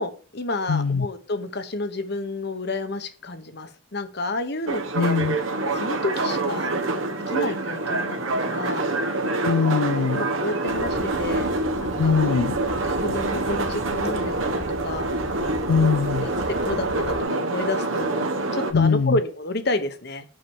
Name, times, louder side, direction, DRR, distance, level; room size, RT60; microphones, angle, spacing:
voice 1, 0.0-5.1 5.7-6.7 7.3-8.2 8.4-8.9 10.1-12.1 12.8-15.1 15.8-15.9 16.2-18.2 18.5-20.2, left 2 dB, 55° left, 1.2 m, -30 dB
voice 2, 0.7-1.1 4.9-5.4 9.4-10.3 12.0-12.6 15.7-16.3 18.7-19.2, left 5 dB, 80° left, 0.4 m, -21 dB
sound 1, 4.7-18.7, right 2 dB, 85° right, 1.2 m, -26 dB
sound 2, 10.7-17.2, equal, 35° left, 1.6 m, -38 dB
6.3 x 6.0 x 7.1 m
head